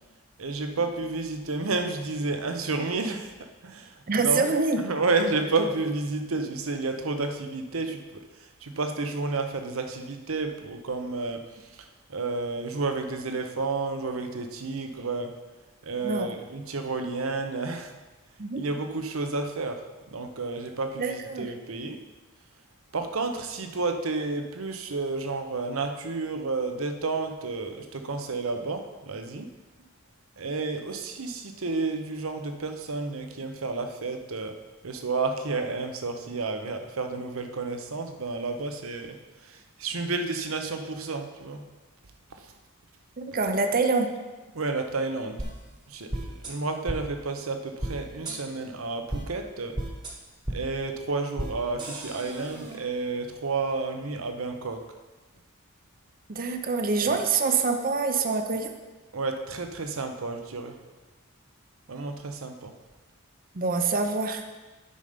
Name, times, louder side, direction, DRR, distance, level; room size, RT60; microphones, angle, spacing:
voice 1, 0.4-4.5 4.8-8.2 8.6-11.5 12.1-15.4 15.8-18.0 18.6-22.0 22.9-29.5 30.4-41.6 42.4-42.5 44.5-45.4 45.9-49.8 50.5-54.8 59.1-60.8 61.9-62.7, right 3 dB, 75° right, 6 dB, 0.8 m, -31 dB
voice 2, 4.1-4.8 16.0-16.3 18.4-18.6 21.0-21.5 43.2-44.1 56.3-58.7 63.5-64.4, right 4 dB, 40° right, 6 dB, 0.7 m, -25 dB
sound 1, 45.4-45.5 46.1-46.5 46.9-47.0 47.8-47.9 48.3-48.4 49.1-49.2 49.8-50.1 50.5-50.6 51.4-51.5 51.8-52.8, right 1 dB, 20° right, 1.2 m, -33 dB
8.9 x 5.4 x 5.1 m, 1.2 s
head